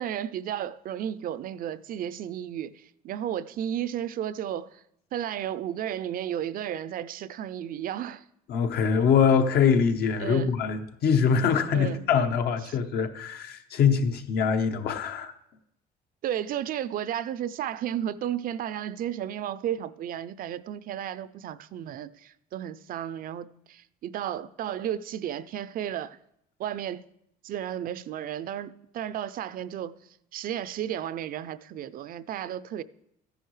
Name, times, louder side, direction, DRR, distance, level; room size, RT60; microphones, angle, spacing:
voice 1, 0.0-4.8 5.1-8.2 10.2-10.5 11.7-12.0 12.7-12.8 16.2-26.2 26.6-27.1 27.4-30.0 30.3-32.8, right 10 dB, 55° right, 0.4 m, -33 dB
voice 2, 8.5-15.3, left 6 dB, 70° left, 1.0 m, -23 dB
14.0 x 10.5 x 3.2 m
cardioid pair, 110°, 17 cm